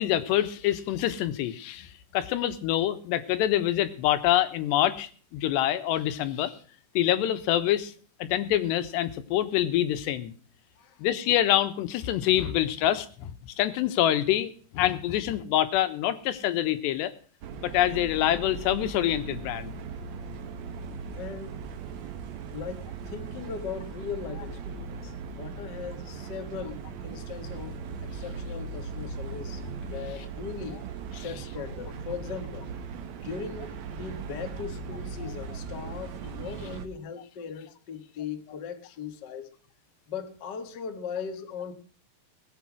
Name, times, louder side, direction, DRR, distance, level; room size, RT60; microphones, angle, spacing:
voice 1, 0.0-6.5 6.9-7.9 8.2-10.3 11.0-17.1 17.6-19.7 31.2-31.3, left 12 dB, 85° left, 3.3 m, -26 dB
sound 1, 17.4-36.9, right 5 dB, 75° right, 1.6 m, -38 dB
voice 2, 21.1-21.5 22.5-29.6 29.9-30.8 31.1-32.7 33.2-39.5 40.1-41.7, left 6 dB, 60° left, 1.1 m, -39 dB
19.5 x 8.4 x 6.1 m
omnidirectional pair, 4.8 m